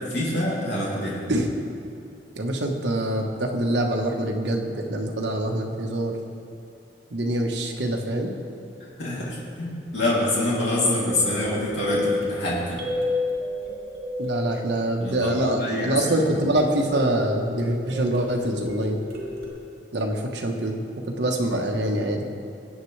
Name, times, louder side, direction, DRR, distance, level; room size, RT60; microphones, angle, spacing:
voice 1, 0.0-1.2 9.0-12.8 15.0-16.3, left 1 dB, 80° left, -6 dB, 2.9 m, -26 dB
voice 2, 2.3-6.2 7.1-8.3 14.2-19.0 19.9-20.8 21.1-22.3, right 1 dB, 80° right, 1 dB, 1.2 m, -25 dB
sound 1, 11.0-15.3 15.8-19.5, left 2 dB, 65° right, 2.9 m, -32 dB
22.0 x 8.3 x 3.3 m, 2.5 s
head